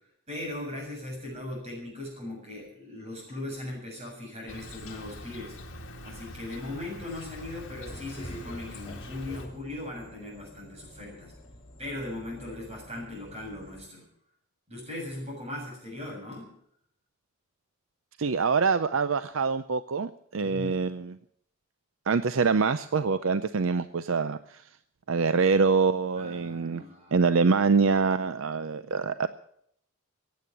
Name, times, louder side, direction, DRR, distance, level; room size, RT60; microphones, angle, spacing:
voice 1, 0.3-5.6 6.0-11.3 11.8-14.1 14.7-16.5 20.4-20.8 26.2-27.3, left 1 dB, 30° right, 0 dB, 7.2 m, -39 dB
Insect, 4.5-9.5, left 1 dB, 60° left, 2.1 m, -43 dB
sound 1, 7.4-13.8, equal, 25° left, 3.4 m, -48 dB
voice 2, 18.2-21.2 22.1-24.6 25.1-26.8 27.1-29.3, right 4 dB, 65° right, 13 dB, 0.5 m, -25 dB
16.5 x 9.5 x 8.5 m, 0.70 s
head